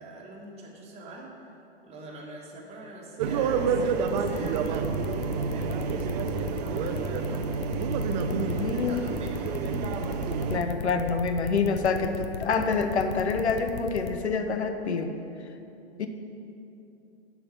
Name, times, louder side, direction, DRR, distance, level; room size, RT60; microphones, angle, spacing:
voice 1, 0.0-1.5 1.8-5.0 5.5-7.5 8.3-9.5, right 2 dB, 20° right, -3 dB, 1.9 m, -44 dB
sound 1, 3.2-10.6, right 5 dB, 40° right, 0.7 m, -29 dB
sound 2, 4.1-14.1, left 6 dB, 20° left, 0.5 m, -37 dB
voice 2, 8.3-9.0 10.5-15.1 16.0-16.1, left 5 dB, 85° left, 7 dB, 1.0 m, -27 dB
7.8 x 5.9 x 7.9 m, 2.8 s
hypercardioid pair, 125°, 33 cm